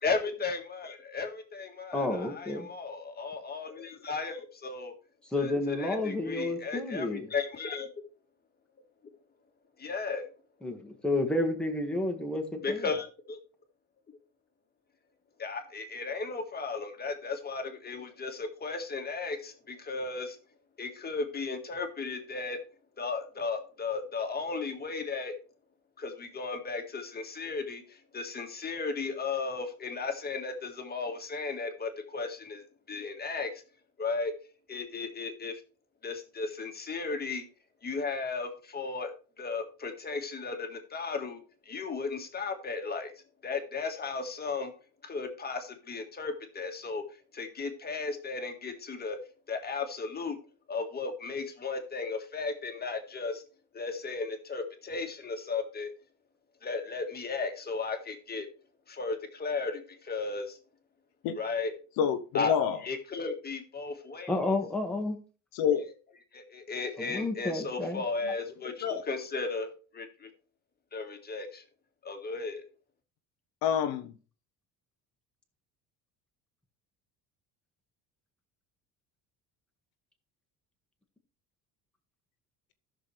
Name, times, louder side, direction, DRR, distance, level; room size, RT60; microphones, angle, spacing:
voice 1, 0.0-4.9 5.4-7.9 9.8-10.3 12.6-13.4 15.4-20.4 20.8-22.6 23.0-25.3 26.0-33.5 34.0-34.3 34.7-35.6 36.0-37.4 37.8-39.1 39.4-43.1 43.4-44.7 45.0-47.0 47.3-49.2 49.5-50.4 50.7-53.4 53.7-55.9 56.6-58.5 58.9-60.6 61.3-61.7 62.3-62.5 62.8-64.3 66.3-70.3 70.9-71.6 72.0-72.6, left 4 dB, 25° left, 1.7 m, -35 dB
voice 2, 1.9-2.7 5.3-7.3 10.6-12.8 64.3-65.2 67.0-68.0, left 2 dB, 5° left, 1.6 m, -31 dB
voice 3, 62.0-62.8 65.5-65.8 68.8-69.0 73.6-74.1, left 8 dB, 70° left, 0.9 m, -27 dB
15.0 x 6.3 x 3.3 m
cardioid pair, 130°, 38 cm